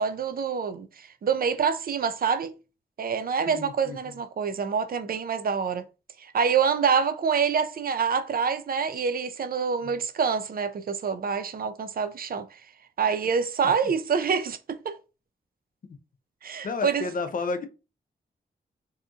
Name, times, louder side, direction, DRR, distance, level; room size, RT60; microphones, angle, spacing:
voice 1, 0.0-2.5 3.0-5.8 6.2-12.4 13.0-15.0 16.4-17.0, right 6 dB, 55° right, 0.4 m, -26 dB
voice 2, 3.5-4.0 16.6-17.7, left 4 dB, 50° left, 0.5 m, -31 dB
2.7 x 2.4 x 2.4 m
cardioid pair, 55°, 18 cm